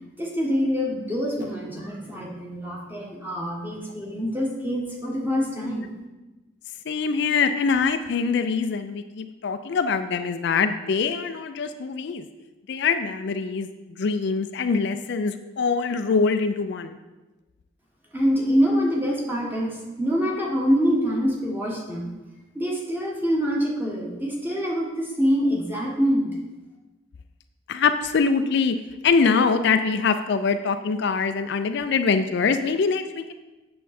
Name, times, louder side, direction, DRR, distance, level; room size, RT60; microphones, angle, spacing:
voice 1, 0.2-5.9 18.1-22.1 22.5-26.3, equal, 10° right, -2 dB, 1.4 m, -25 dB
voice 2, 6.9-12.3 12.7-17.0 27.7-33.3, left 5 dB, 55° left, 9 dB, 0.4 m, -24 dB
8.4 x 6.6 x 4.2 m, 1.1 s
head